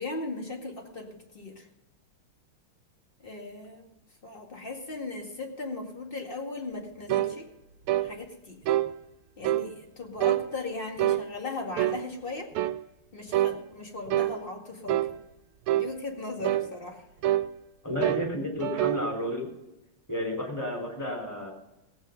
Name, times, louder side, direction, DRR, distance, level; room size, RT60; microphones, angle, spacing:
voice 1, 0.0-1.7 3.2-3.9 4.2-7.5 8.0-8.6 9.4-12.5 13.1-15.1 15.8-17.0, left 3 dB, 25° left, 2 dB, 2.1 m, -38 dB
sound 1, 7.1-7.3 7.9-8.1 8.7-8.9 9.4-9.7 10.2-10.5 11.0-11.2 11.8-12.0 12.5-12.8 13.3-13.6 14.1-14.4 14.9-15.1 15.7-15.9 16.4-16.7 17.2-17.5 18.0-18.3 18.6-19.0, right 13 dB, 85° right, 1.6 m, -25 dB
voice 2, 17.8-19.5 20.1-21.5, equal, 10° left, 0 dB, 3.7 m, -31 dB
17.0 x 9.0 x 5.2 m, 0.94 s
omnidirectional pair, 2.4 m